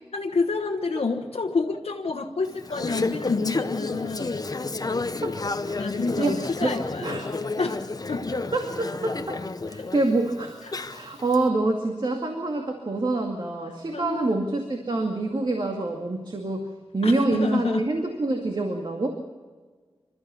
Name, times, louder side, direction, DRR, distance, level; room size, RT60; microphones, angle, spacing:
voice 1, 0.1-4.4 5.8-7.2 7.6-8.4 9.8-9.9 10.6-10.7 13.9-14.4 17.0-17.9, left 4 dB, 90° left, 2 dB, 1.3 m, -28 dB
Conversation / Chatter, 2.4-11.4, left 3 dB, 40° left, 0.8 m, -31 dB
voice 2, 8.5-10.6 10.9-16.7 16.9-19.1, right 2 dB, 50° right, 3 dB, 2.2 m, -26 dB
27.5 x 13.5 x 7.0 m, 1.5 s
wide cardioid pair, 85°, 10 cm